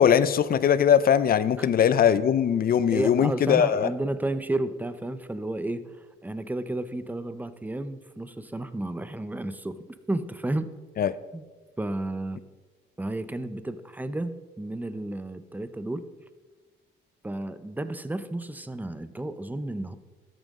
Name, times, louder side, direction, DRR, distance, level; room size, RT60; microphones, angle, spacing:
voice 1, 0.0-3.9 11.0-11.1, left 8 dB, 50° left, 15 dB, 0.6 m, -21 dB
voice 2, 2.9-9.8 10.1-10.7 11.3-11.4 11.8-12.4 13.0-16.1 17.2-20.0, right 1 dB, 10° right, 12 dB, 0.7 m, -32 dB
13.0 x 9.1 x 3.7 m, 1.3 s
cardioid pair, 90°, 20 cm